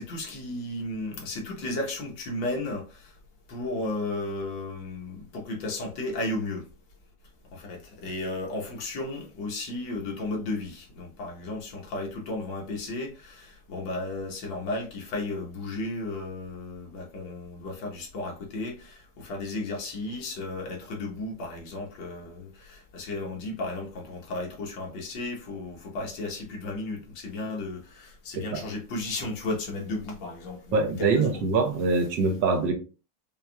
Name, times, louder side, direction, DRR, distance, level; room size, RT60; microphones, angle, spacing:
voice 1, 0.0-3.1 3.5-6.7 7.5-31.5, left 2 dB, 65° left, 1.7 m, -34 dB
voice 2, 30.7-32.7, right 4 dB, 65° right, 1.4 m, -24 dB
5.5 x 2.9 x 2.3 m
omnidirectional pair, 2.3 m